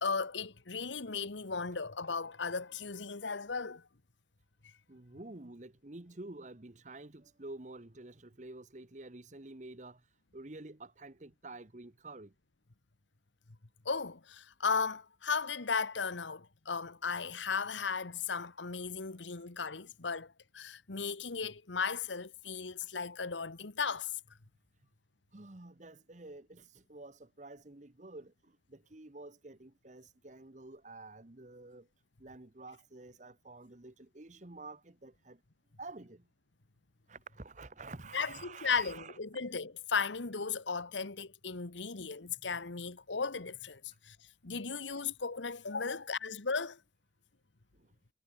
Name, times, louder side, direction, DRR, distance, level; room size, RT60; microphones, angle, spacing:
voice 1, 0.0-3.8 13.8-24.1 38.1-44.2 44.4-46.8, left 5 dB, 85° left, 1.4 m, -36 dB
voice 2, 4.9-10.0 10.3-12.3 25.3-28.3 28.7-31.8 32.2-35.4 35.8-36.2 37.1-39.2, right 2 dB, 40° right, 1.2 m, -49 dB
head